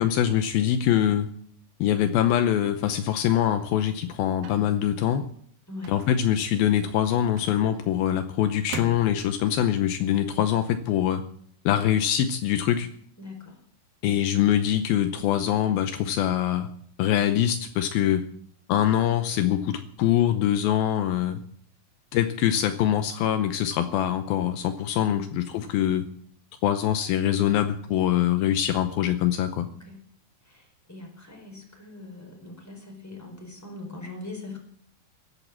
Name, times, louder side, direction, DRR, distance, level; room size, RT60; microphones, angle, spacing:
voice 1, 0.0-1.3 1.8-5.3 5.9-11.2 11.7-12.9 14.0-16.7 17.0-18.3 18.7-21.4 22.1-26.1 26.6-29.7, left 11 dB, 80° left, 8 dB, 2.6 m, -24 dB
sound 1, 2.6-3.1 4.4-4.8 5.8-6.5 7.4-8.1 8.7-9.4, right 8 dB, 75° right, 2.9 m, -41 dB
voice 2, 5.7-6.0 13.2-13.6 29.6-30.0 30.4-34.6, left 3 dB, 5° left, 1 dB, 4.3 m, -41 dB
16.5 x 11.0 x 7.4 m, 0.64 s
omnidirectional pair, 4.4 m